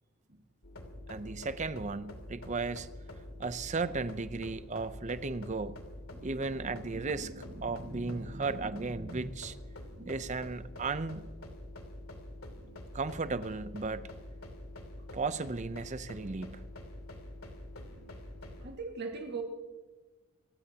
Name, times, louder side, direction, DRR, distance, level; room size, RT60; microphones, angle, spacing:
sound 1, 0.6-18.7, left 1 dB, 70° left, 2.7 m, -46 dB
voice 1, 1.1-2.9 3.4-5.8 6.2-7.3 7.6-9.5 10.1-11.3 12.9-14.1 15.1-16.6, right 4 dB, 30° right, 0.6 m, -35 dB
voice 2, 6.1-9.3 9.9-10.2 18.6-19.4, right 3 dB, 45° right, 1.8 m, -43 dB
28.0 x 15.5 x 2.9 m
head